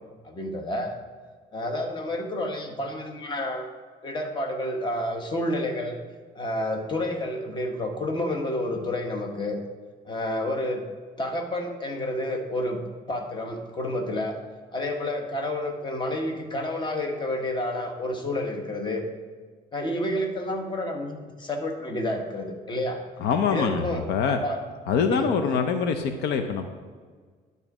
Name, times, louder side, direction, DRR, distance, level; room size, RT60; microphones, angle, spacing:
voice 1, 0.2-0.9 1.5-3.7 4.0-6.0 6.3-9.6 10.1-10.8 11.2-12.8 13.1-14.4 14.7-19.0 19.7-23.0 23.5-24.6 25.1-25.3, left 1 dB, 25° left, 3 dB, 1.3 m, -29 dB
voice 2, 23.2-24.4 24.9-26.6, left 6 dB, 80° left, 7 dB, 0.7 m, -24 dB
11.0 x 4.1 x 6.1 m, 1.5 s
cardioid pair, 110°, 17 cm